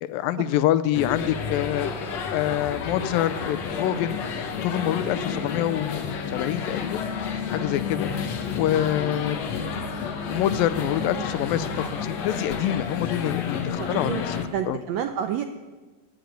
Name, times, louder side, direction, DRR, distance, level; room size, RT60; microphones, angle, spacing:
voice 1, 0.0-1.9 2.3-4.2 4.6-7.1 7.3-8.1 8.6-9.6 10.3-14.3 14.7-14.8, left 12 dB, 90° left, 12 dB, 2.4 m, -26 dB
sound 1, 0.9-14.5, left 6 dB, 60° left, 2.3 m, -30 dB
voice 2, 2.0-2.4 8.1-8.3 11.0-11.3 13.7-14.2 14.5-15.4, right 9 dB, 80° right, 7 dB, 1.5 m, -31 dB
15.0 x 10.5 x 9.2 m, 1.3 s
omnidirectional pair, 4.0 m